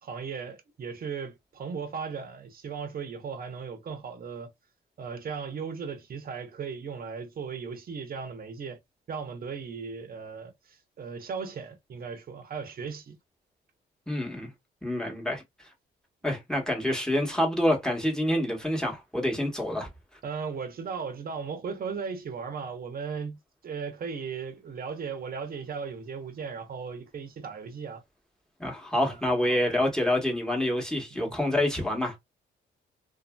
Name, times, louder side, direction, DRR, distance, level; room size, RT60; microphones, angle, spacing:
voice 1, 0.0-4.5 5.0-8.8 9.1-13.2 20.2-28.0 29.0-29.7 31.1-31.4, right 6 dB, 50° right, 0.9 m, -37 dB
voice 2, 14.1-14.5 14.8-15.4 16.2-19.9 28.6-32.2, left 1 dB, 5° left, 1.2 m, -27 dB
2.7 x 2.6 x 2.2 m
cardioid pair, 90°, 20 cm